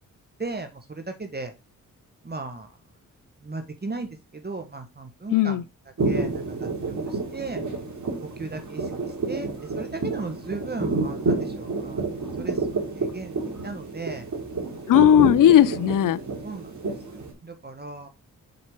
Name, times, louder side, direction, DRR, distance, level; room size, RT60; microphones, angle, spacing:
voice 1, 0.4-1.5 2.2-2.7 3.4-5.6 6.0-7.6 8.4-14.3 16.4-18.1, right 3 dB, 30° right, 1.5 m, -36 dB
voice 2, 5.3-5.6 14.9-16.2, left 11 dB, 70° left, 0.5 m, -16 dB
sound 1, 6.0-17.3, right 3 dB, 55° right, 2.9 m, -29 dB
6.8 x 5.2 x 3.8 m
supercardioid pair, 50°, 34 cm